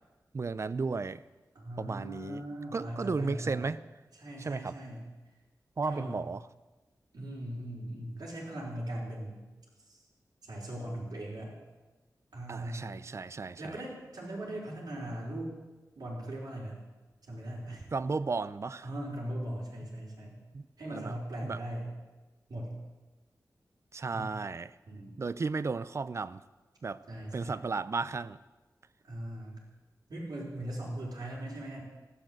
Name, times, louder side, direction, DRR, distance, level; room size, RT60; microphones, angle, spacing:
voice 1, 0.3-1.2 1.8-2.4 2.7-3.8 4.4-4.7 5.8-6.4 12.5-13.7 17.9-18.8 20.5-21.1 21.4-21.6 23.9-24.7 25.2-26.4 26.8-27.0 27.3-28.4, right 4 dB, 45° right, 15 dB, 0.5 m, -34 dB
voice 2, 1.5-3.7 4.2-5.1 5.8-6.2 7.1-9.4 10.5-11.5 12.3-12.9 13.6-15.5 15.9-16.8 17.3-17.9 18.8-20.3 20.8-21.8 22.5-22.7 24.1-24.2 24.9-25.1 27.1-27.5 29.0-29.6 30.1-31.8, right 1 dB, 85° right, -6 dB, 5.0 m, -39 dB
15.0 x 12.0 x 7.9 m, 1.2 s
wide cardioid pair, 125°, 7 cm